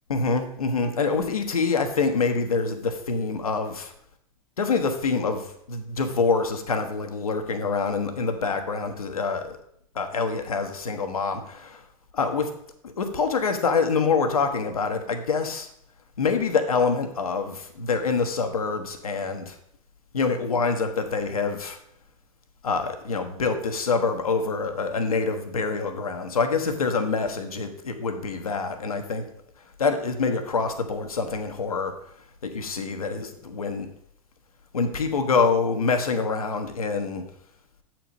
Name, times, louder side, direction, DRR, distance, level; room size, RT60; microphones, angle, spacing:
voice 1, 0.1-3.9 4.6-9.6 9.9-11.8 12.1-12.5 12.8-15.7 16.2-19.6 20.1-21.8 22.6-29.3 29.8-31.9 32.4-33.9 34.7-37.2, left 4 dB, 75° left, 6 dB, 1.0 m, -26 dB
7.6 x 4.5 x 5.3 m, 0.71 s
figure-of-eight pair, 90°, 18 cm